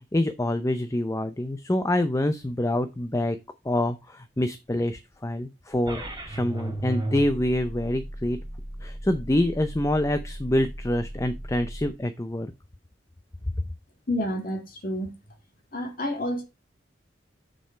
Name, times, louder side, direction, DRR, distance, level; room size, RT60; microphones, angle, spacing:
voice 1, 0.1-3.4 3.6-8.4 8.8-12.5, left 1 dB, 15° left, 0.5 m, -26 dB
sound 1, 5.9-11.9, right 1 dB, 20° right, 2.6 m, -35 dB
voice 2, 14.1-15.1 15.7-16.4, left 1 dB, 50° left, 2.0 m, -29 dB
6.7 x 6.2 x 4.5 m
head